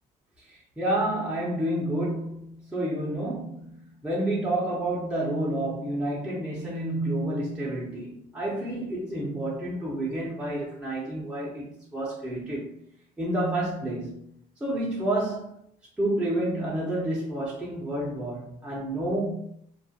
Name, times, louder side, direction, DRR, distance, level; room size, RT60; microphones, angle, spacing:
voice 1, 0.5-12.7 13.2-14.2 14.6-15.5 16.0-19.4, right 1 dB, 5° right, -7 dB, 0.7 m, -29 dB
2.3 x 2.1 x 2.7 m, 0.68 s
cardioid pair, 110°, 17 cm